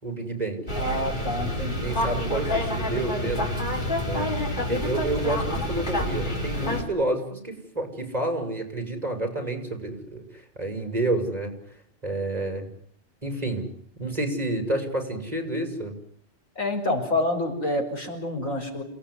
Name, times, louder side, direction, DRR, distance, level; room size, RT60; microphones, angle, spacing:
voice 1, 0.0-0.6 1.2-1.4 1.8-3.5 4.0-4.3 4.7-11.5 12.0-12.7 13.2-13.7 14.0-15.9, right 2 dB, 30° right, 5 dB, 6.0 m, -29 dB
sound 1, 0.7-6.8, left 1 dB, 35° left, 4.9 m, -28 dB
voice 2, 0.8-1.9 16.6-18.8, left 1 dB, 90° left, 3 dB, 5.8 m, -28 dB
28.5 x 18.5 x 9.9 m, 0.68 s
omnidirectional pair, 1.3 m